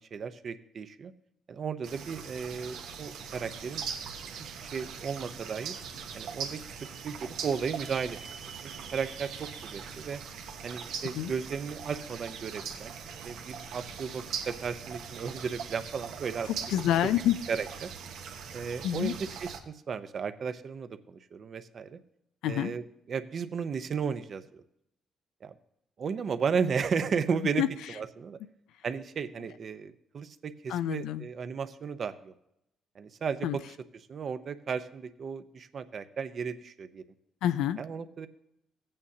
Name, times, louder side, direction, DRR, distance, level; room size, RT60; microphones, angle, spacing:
voice 1, 0.1-1.1 1.5-3.8 4.2-5.7 6.1-8.2 8.6-10.2 10.6-16.5 17.5-17.9 18.5-22.0 22.4-22.8 23.1-24.6 25.4-25.5 26.0-27.6 27.9-28.4 28.8-32.3 32.9-33.6 34.1-37.0 37.8-38.3, right 6 dB, 50° right, 11 dB, 0.7 m, -34 dB
sound 1, 1.8-19.6, right 6 dB, 85° right, 1.2 m, -41 dB
voice 2, 16.7-17.4 18.8-19.1 22.4-22.7 27.6-27.7 30.7-31.2 33.4-33.6 37.4-37.8, left 12 dB, 90° left, 12 dB, 0.4 m, -27 dB
15.5 x 8.8 x 2.8 m, 0.79 s
cardioid pair, 90°, 0 cm